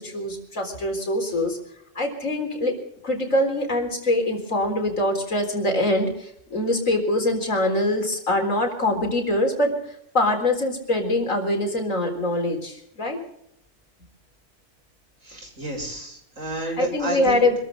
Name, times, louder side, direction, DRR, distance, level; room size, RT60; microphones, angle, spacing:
voice 1, 0.0-1.6 1.9-2.7 3.0-9.8 10.1-13.2 16.8-17.6, left 1 dB, 85° left, 4 dB, 4.4 m, -23 dB
voice 2, 15.2-17.6, right 1 dB, 90° right, 1 dB, 7.4 m, -31 dB
26.5 x 14.0 x 3.9 m, 0.75 s
omnidirectional pair, 1.3 m